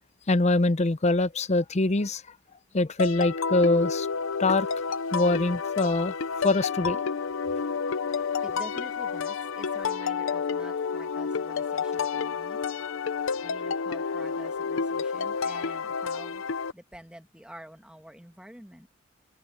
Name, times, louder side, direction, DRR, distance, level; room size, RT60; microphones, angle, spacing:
voice 1, 0.3-2.2 2.7-4.1 4.4-4.7 5.1-6.2 6.4-7.0 8.1-8.2, left 2 dB, 35° left, 0.7 m, -23 dB
sound 1, 3.0-16.7, left 5 dB, 70° left, 0.6 m, -30 dB
voice 2, 8.1-12.6 13.4-16.4 16.7-18.9, equal, 5° right, 2.0 m, -48 dB
head